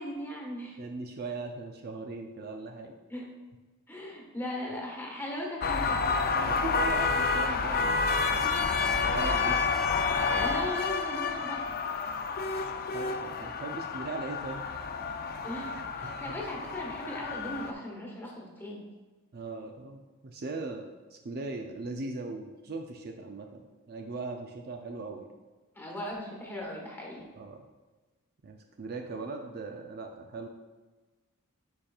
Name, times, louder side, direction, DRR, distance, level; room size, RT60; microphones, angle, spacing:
voice 1, 0.0-0.8 3.1-3.3 3.9-6.0 10.4-11.7 15.4-18.8 25.7-27.2, left 1 dB, 10° left, -2 dB, 1.3 m, -38 dB
voice 2, 0.8-3.0 6.5-8.1 9.0-9.7 12.9-14.7 16.0-16.4 19.3-25.3 27.4-27.6 28.4-30.5, right 3 dB, 45° right, 3 dB, 0.5 m, -39 dB
sound 1, 5.6-17.7, left 4 dB, 45° left, 0.4 m, -29 dB
10.0 x 4.3 x 2.4 m, 1.2 s
head